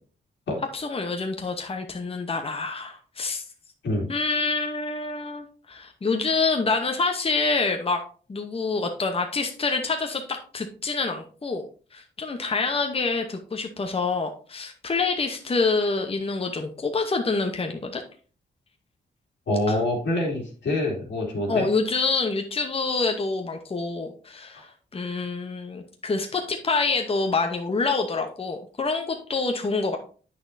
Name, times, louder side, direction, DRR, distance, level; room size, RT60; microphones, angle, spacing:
voice 1, 0.7-3.4 4.1-8.0 8.3-11.7 11.9-18.0 19.7-19.8 21.5-30.0, left 4 dB, 30° left, 4 dB, 0.9 m, -27 dB
voice 2, 19.5-21.6, left 1 dB, 85° left, -1 dB, 2.7 m, -26 dB
8.5 x 6.2 x 2.7 m, 0.39 s
cardioid pair, 90°, 18 cm